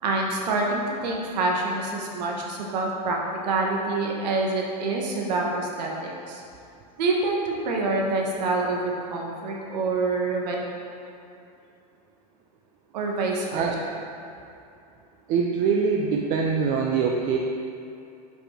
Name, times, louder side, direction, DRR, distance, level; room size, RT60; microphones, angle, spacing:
voice 1, 0.0-3.2 3.4-6.4 7.0-10.5 12.9-13.7, right 3 dB, 80° right, -1 dB, 1.2 m, -26 dB
voice 2, 15.3-17.4, right 5 dB, 45° right, 0 dB, 0.5 m, -23 dB
5.3 x 5.0 x 4.3 m, 2.6 s
supercardioid pair, 125°, 21 cm